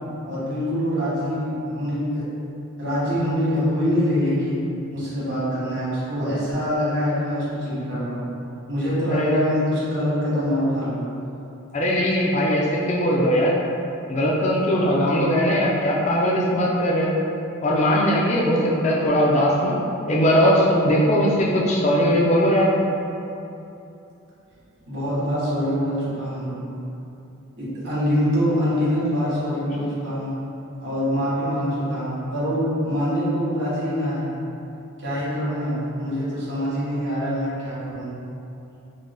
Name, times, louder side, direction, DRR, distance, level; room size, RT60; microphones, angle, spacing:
voice 1, 0.2-2.3 2.8-4.6 4.9-8.2 8.7-11.0 24.9-26.6 27.6-30.4 30.8-34.4 35.0-38.1, equal, 60° right, -10 dB, 1.4 m, -24 dB
voice 2, 11.7-13.5 14.1-17.1 17.6-19.8 20.1-22.7 29.7-29.8, equal, 30° left, -4 dB, 0.3 m, -20 dB
3.6 x 3.2 x 2.2 m, 2.8 s
head